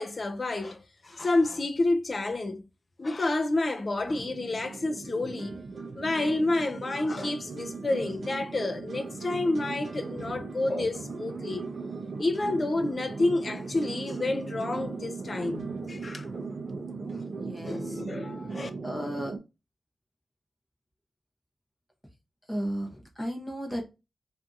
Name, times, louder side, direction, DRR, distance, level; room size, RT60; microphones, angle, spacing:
voice 1, 0.0-2.6 3.0-5.5 6.0-11.6 12.2-16.3 17.1-17.2 17.6-18.7, left 2 dB, 35° left, 0.3 m, -29 dB
sound 1, 4.0-19.4, right 4 dB, 65° right, 0.5 m, -38 dB
voice 2, 17.3-18.0 18.8-19.3 22.5-23.8, equal, ahead, 0.8 m, -34 dB
2.6 x 2.5 x 2.2 m
wide cardioid pair, 165°, 0 cm